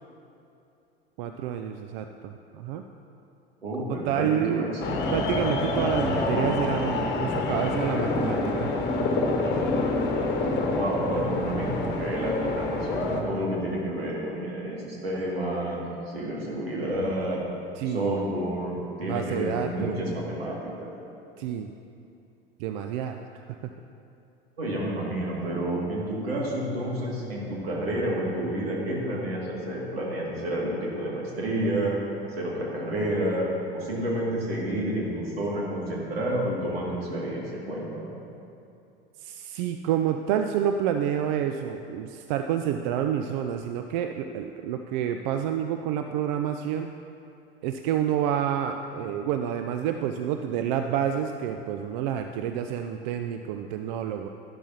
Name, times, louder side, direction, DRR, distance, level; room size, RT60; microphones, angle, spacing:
voice 1, 1.2-2.8 3.9-4.7 5.1-9.3 17.8-18.1 19.0-20.0 21.4-21.7 22.6-23.2 23.5-23.6 39.2-46.9 47.6-54.3, right 9 dB, 50° right, 6 dB, 0.5 m, -29 dB
voice 2, 3.6-5.1 10.7-17.4 17.9-20.9 24.6-31.9 32.2-33.4 33.7-38.1, right 1 dB, 75° right, -4 dB, 2.4 m, -30 dB
sound 1, 4.8-13.2, left 2 dB, 35° left, 1.4 m, -27 dB
12.0 x 11.5 x 2.9 m, 2.7 s
figure-of-eight pair, 75°, 31 cm